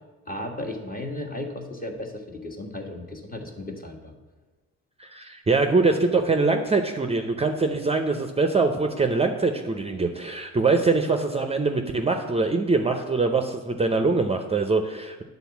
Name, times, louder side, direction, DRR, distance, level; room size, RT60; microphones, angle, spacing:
voice 1, 0.3-4.1, left 1 dB, 30° left, 2 dB, 1.5 m, -35 dB
voice 2, 5.0-15.2, right 3 dB, 20° right, 5 dB, 0.6 m, -23 dB
9.2 x 4.0 x 7.1 m, 1.2 s
cardioid pair, 90°, 30 cm